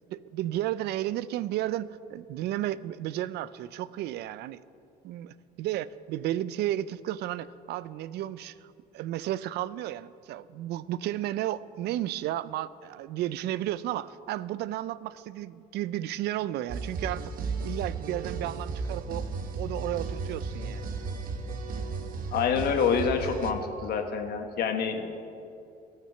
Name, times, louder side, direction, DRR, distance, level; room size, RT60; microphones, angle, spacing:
voice 1, 0.1-4.6 5.0-20.9, right 13 dB, 75° right, 17 dB, 0.4 m, -33 dB
sound 1, 16.7-23.5, right 4 dB, 55° right, 1.0 m, -34 dB
voice 2, 22.3-25.2, left 6 dB, 65° left, 5 dB, 1.4 m, -27 dB
16.0 x 6.6 x 7.0 m, 2.5 s
cardioid pair, 110°, 17 cm